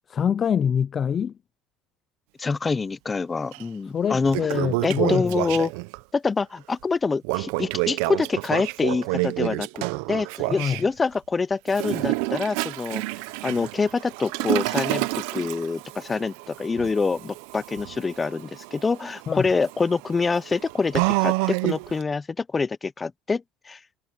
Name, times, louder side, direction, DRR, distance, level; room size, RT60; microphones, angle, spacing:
voice 1, 0.1-1.3 3.9-5.4 10.5-10.8 19.3-19.5, left 7 dB, 40° left, 0.5 m, -25 dB
voice 2, 2.4-4.4 4.8-5.7 6.1-13.0 13.4-23.8, left 4 dB, 20° left, 0.9 m, -26 dB
Toilet flush, 3.5-3.6 4.1-6.0 7.2-10.8 11.7-22.0, right 23 dB, 80° right, 0.8 m, -28 dB
supercardioid pair, 100°, 0 cm